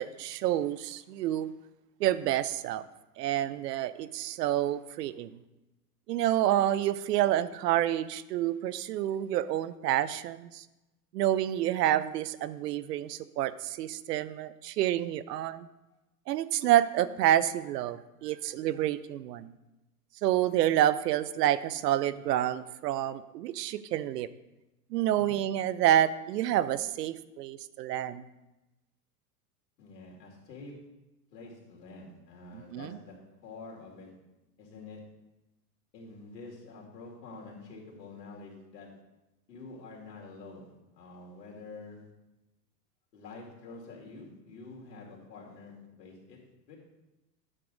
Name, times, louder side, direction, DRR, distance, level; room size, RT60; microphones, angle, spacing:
voice 1, 0.0-1.5 2.0-2.8 3.2-5.3 6.1-10.6 11.1-15.7 16.3-19.5 20.2-24.3 24.9-28.2 32.5-33.0, right 12 dB, 75° right, 16 dB, 0.7 m, -28 dB
voice 2, 25.1-25.4 29.8-30.7 31.3-33.1 33.4-34.1 34.6-35.0 35.9-38.9 39.5-42.0 43.1-46.4 46.7-46.8, left 3 dB, 80° left, -3 dB, 2.7 m, -47 dB
9.8 x 6.8 x 3.9 m, 1.0 s
hypercardioid pair, 105°, 49 cm